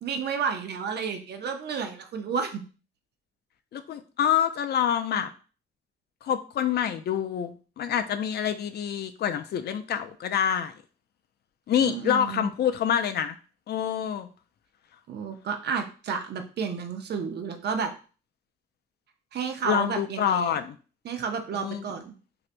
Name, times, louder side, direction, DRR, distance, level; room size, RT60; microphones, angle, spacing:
voice 1, 0.0-2.6 11.7-12.5 15.1-17.9 19.3-20.6 21.0-22.1, right 6 dB, 55° right, 6 dB, 0.6 m, -31 dB
voice 2, 3.7-5.3 6.2-10.7 11.7-13.4 13.7-14.3 19.6-20.8 21.5-21.9, left 9 dB, 55° left, 9 dB, 0.4 m, -27 dB
3.2 x 2.7 x 2.5 m, 0.37 s
cardioid pair, 90°, 20 cm